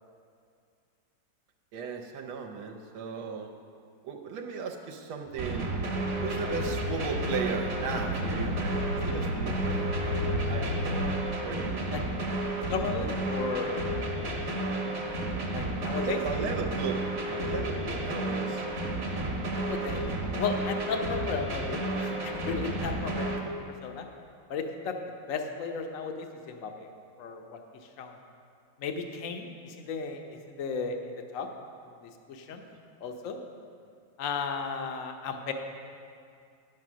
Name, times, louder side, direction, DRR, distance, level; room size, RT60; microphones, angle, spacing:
voice 1, 1.7-3.5 4.0-5.7 6.2-11.0 11.4-11.8 15.8-18.6 32.5-32.8, right 6 dB, 80° right, 2 dB, 1.6 m, -36 dB
sound 1, 5.3-11.2, left 2 dB, 85° left, 1.9 m, -34 dB
sound 2, 5.4-23.4, right 1 dB, 40° right, 1.2 m, -32 dB
voice 2, 12.7-14.4 15.5-16.2 19.4-20.1 20.4-24.0 24.5-25.0 25.3-26.9 27.2-27.6 28.0-28.2 28.8-31.0 31.3-31.5 32.0-32.6 33.0-33.4 34.2-35.5, left 5 dB, 60° left, 4 dB, 0.8 m, -35 dB
10.5 x 7.4 x 6.1 m, 2.3 s
omnidirectional pair, 2.3 m